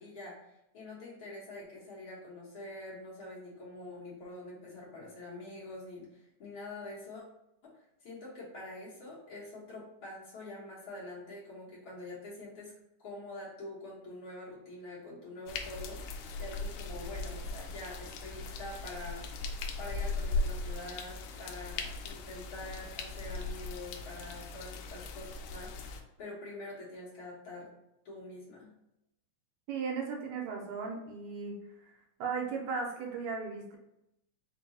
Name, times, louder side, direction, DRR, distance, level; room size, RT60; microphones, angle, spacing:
voice 1, 0.0-7.2 7.6-12.7 13.0-19.3 19.8-27.7 28.0-28.7, left 2 dB, 55° left, -6 dB, 1.6 m, -45 dB
sound 1, 15.5-26.0, left 3 dB, 80° left, 1.6 m, -38 dB
voice 2, 29.7-31.6 31.8-31.9 32.2-33.8, right 5 dB, 80° right, 1 dB, 1.9 m, -36 dB
4.7 x 2.2 x 4.0 m, 0.84 s
omnidirectional pair, 3.5 m